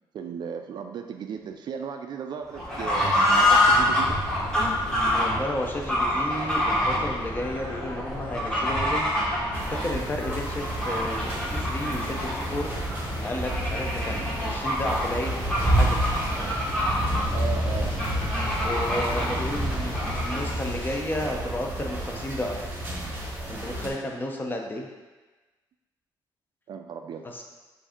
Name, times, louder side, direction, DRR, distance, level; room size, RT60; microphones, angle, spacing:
voice 1, 0.1-4.2 17.3-18.0 23.0-23.1 24.3-24.4 26.7-27.3, right 7 dB, 55° right, 5 dB, 0.4 m, -36 dB
Fowl / Bird, 2.5-20.6, left 1 dB, 10° left, 1.1 m, -27 dB
sound 1, 4.0-21.0, left 1 dB, 85° left, 1.1 m, -45 dB
voice 2, 5.1-9.1 9.7-12.7 13.2-16.0 18.6-22.8 23.5-24.9 27.2-27.4, left 1 dB, 25° left, 1 dB, 0.6 m, -32 dB
sound 2, 9.5-23.9, right 1 dB, 25° right, 0.9 m, -30 dB
4.6 x 2.6 x 4.3 m, 1.2 s
cardioid pair, 115°, 9 cm